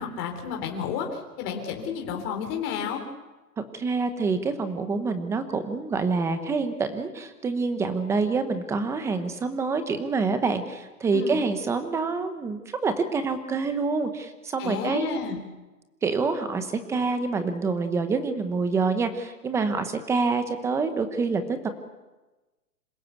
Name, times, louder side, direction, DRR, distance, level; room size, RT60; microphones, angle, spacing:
voice 1, 0.0-3.0 11.1-11.4 14.6-15.4, left 7 dB, 25° left, 3 dB, 3.6 m, -31 dB
voice 2, 3.7-15.2 16.0-21.7, right 4 dB, 5° right, 9 dB, 0.9 m, -27 dB
26.5 x 17.0 x 8.2 m, 1.1 s
hypercardioid pair, 155°, 48 cm